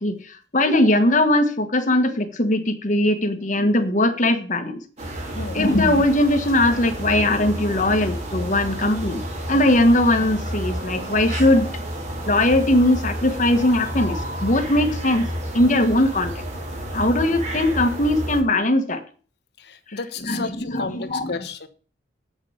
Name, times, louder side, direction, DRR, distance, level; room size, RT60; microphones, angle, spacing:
voice 1, 0.0-4.8 5.5-9.2 9.5-11.8 12.3-15.3 15.5-16.4 16.9-19.0 19.9-20.0 20.3-21.4, left 1 dB, 45° left, 1.3 m, -20 dB
sound 1, 5.0-18.4, equal, 35° right, 2.3 m, -30 dB
voice 2, 19.6-21.7, left 3 dB, 60° left, 1.1 m, -32 dB
8.6 x 6.4 x 7.1 m
head